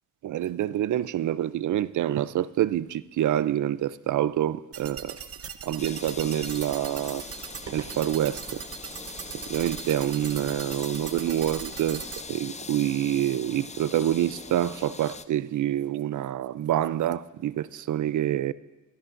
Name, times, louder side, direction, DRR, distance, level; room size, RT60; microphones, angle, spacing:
voice 1, 0.2-5.2 5.6-7.2 7.7-8.6 9.5-18.5, right 12 dB, 65° right, 0.5 m, -27 dB
sound 1, 4.7-12.2, right 7 dB, 45° right, 0.8 m, -40 dB
sound 2, 5.8-15.3, left 4 dB, 20° left, 0.6 m, -42 dB
22.5 x 14.0 x 2.6 m
cardioid pair, 75°, 33 cm